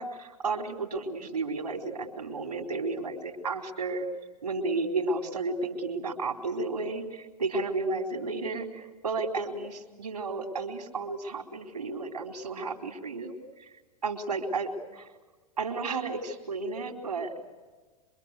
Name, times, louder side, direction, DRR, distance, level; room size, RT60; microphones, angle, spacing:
voice 1, 0.0-4.1 4.4-13.7 14.0-15.1 15.6-17.3, right 3 dB, 80° right, 2 dB, 4.1 m, -32 dB
26.5 x 24.0 x 8.2 m, 1.4 s
figure-of-eight pair, 95°, 20 cm